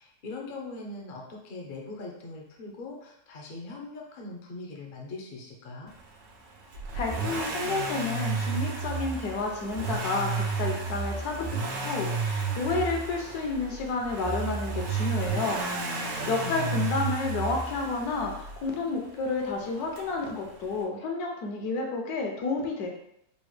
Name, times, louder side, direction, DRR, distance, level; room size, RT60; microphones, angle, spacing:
voice 1, 0.0-5.9 15.8-16.9, left 3 dB, 60° left, -1 dB, 0.5 m, -41 dB
Accelerating revving vroom, 6.7-18.7 20.0-20.1, right 4 dB, 80° right, 1.2 m, -32 dB
voice 2, 6.9-15.6 16.3-22.9, left 3 dB, 75° left, 1 dB, 1.2 m, -30 dB
4.0 x 2.1 x 3.1 m, 0.76 s
omnidirectional pair, 1.7 m